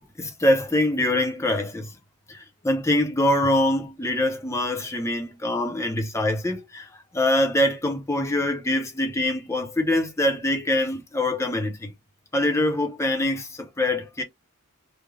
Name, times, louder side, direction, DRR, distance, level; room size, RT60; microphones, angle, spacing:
voice 1, 0.2-1.9 2.3-6.9 7.1-11.9 12.3-14.2, left 1 dB, 10° left, 0.7 m, -24 dB
3.7 x 2.2 x 3.2 m
head